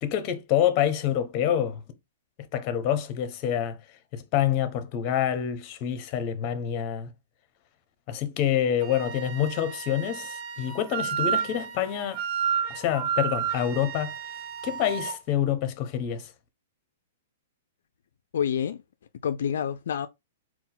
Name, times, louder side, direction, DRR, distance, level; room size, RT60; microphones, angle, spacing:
voice 1, 0.0-1.8 2.5-3.8 4.1-7.1 8.1-12.2 12.7-14.1 14.6-16.3, left 10 dB, 40° left, 0.7 m, -27 dB
Wind instrument woodwind instrument, 8.8-15.2, right 8 dB, 40° right, 0.6 m, -31 dB
voice 2, 18.3-18.8 19.2-20.1, left 8 dB, 75° left, 0.3 m, -27 dB
3.9 x 2.4 x 3.8 m
hypercardioid pair, 135°, 0 cm